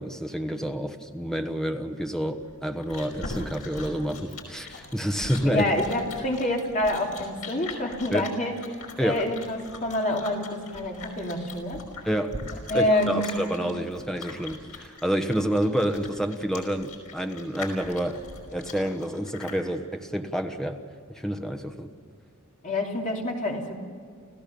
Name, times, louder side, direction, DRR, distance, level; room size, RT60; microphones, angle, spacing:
voice 1, 0.0-5.6 8.1-8.3 9.0-9.2 12.1-12.3 12.7-18.2 18.5-20.8 21.1-21.9, equal, ahead, 6 dB, 1.3 m, -28 dB
Chewing mastication, 2.4-19.6, left 3 dB, 80° left, 5.2 m, -41 dB
voice 2, 5.4-8.6 9.0-11.8 12.7-13.4 22.6-23.7, left 1 dB, 35° left, 0 dB, 3.1 m, -27 dB
30.0 x 15.5 x 7.0 m, 2.1 s
head